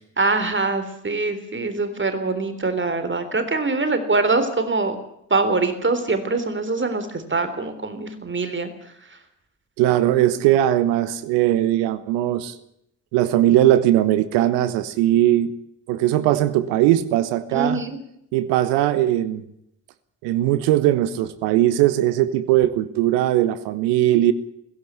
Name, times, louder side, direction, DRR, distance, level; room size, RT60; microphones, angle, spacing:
voice 1, 0.2-5.0 5.3-8.7 17.5-18.0, right 3 dB, 25° right, 9 dB, 3.7 m, -23 dB
voice 2, 9.8-12.5 13.1-15.5 15.9-17.8 18.3-19.4 20.2-24.3, right 13 dB, 65° right, 13 dB, 1.3 m, -19 dB
17.0 x 16.5 x 9.6 m, 0.77 s
figure-of-eight pair, 45°, 44 cm